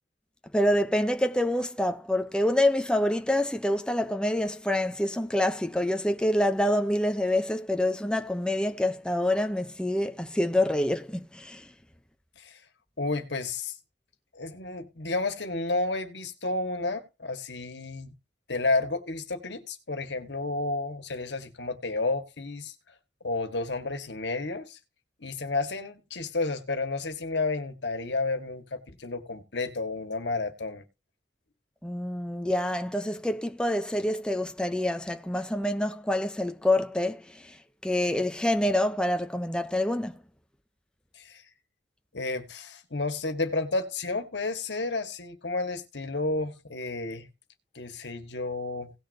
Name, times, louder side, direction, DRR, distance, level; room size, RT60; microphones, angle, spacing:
voice 1, 0.5-11.7 31.8-40.2, left 1 dB, 5° left, 0.7 m, -27 dB
voice 2, 13.0-13.7 14.3-18.1 18.5-22.7 23.2-24.8 25.2-30.8 41.2-41.4 42.1-47.3 47.8-48.9, left 3 dB, 85° left, 1.7 m, -31 dB
18.0 x 6.4 x 2.8 m
head